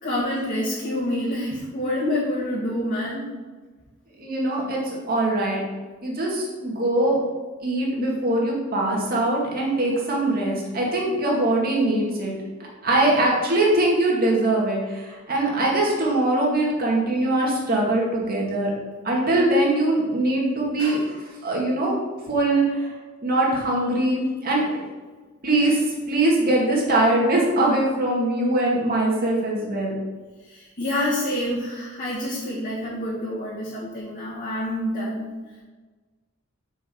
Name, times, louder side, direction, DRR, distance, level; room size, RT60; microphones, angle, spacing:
voice 1, 0.0-3.3 30.4-35.2, left 1 dB, 45° left, -9 dB, 2.0 m, -27 dB
voice 2, 4.2-5.6 6.0-7.2 7.6-12.3 12.8-18.7 19.0-21.0 21.4-22.0 22.3-22.9 23.2-24.7 25.4-29.9, right 1 dB, 45° right, -3 dB, 2.2 m, -22 dB
6.3 x 5.2 x 6.2 m, 1.3 s
head